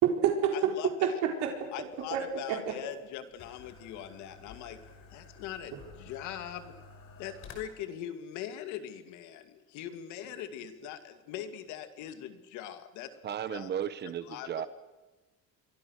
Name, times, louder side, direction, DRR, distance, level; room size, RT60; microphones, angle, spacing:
voice 1, 0.0-0.5 1.0-2.7, right 8 dB, 60° right, 3 dB, 4.3 m, -29 dB
voice 2, 0.5-1.2 1.7-4.8 5.1-6.7 7.2-13.2 13.5-13.7 14.2-14.5, left 10 dB, 65° left, 9 dB, 2.4 m, -41 dB
sound 1, 2.0-7.5, left 5 dB, 45° left, 5.3 m, -52 dB
voice 3, 13.2-14.7, right 9 dB, 35° right, 13 dB, 1.0 m, -35 dB
29.0 x 23.5 x 6.5 m, 1.1 s
cardioid pair, 175°, 31 cm